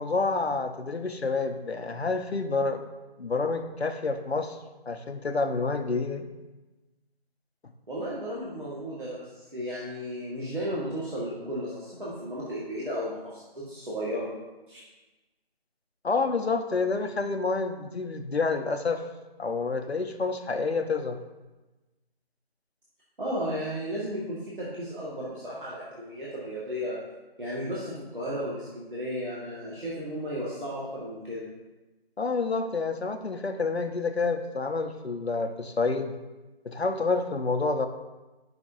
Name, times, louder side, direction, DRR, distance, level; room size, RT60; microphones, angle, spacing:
voice 1, 0.0-2.8 3.2-4.6 4.9-6.3 16.0-19.0 19.4-21.2 32.2-36.1 36.6-37.9, left 3 dB, 85° left, 7 dB, 0.9 m, -28 dB
voice 2, 7.9-14.3 14.7-14.8 23.2-27.0 27.4-31.4, equal, 55° right, -8 dB, 1.8 m, -34 dB
10.5 x 6.0 x 2.7 m, 1.1 s
figure-of-eight pair, 180°, 31 cm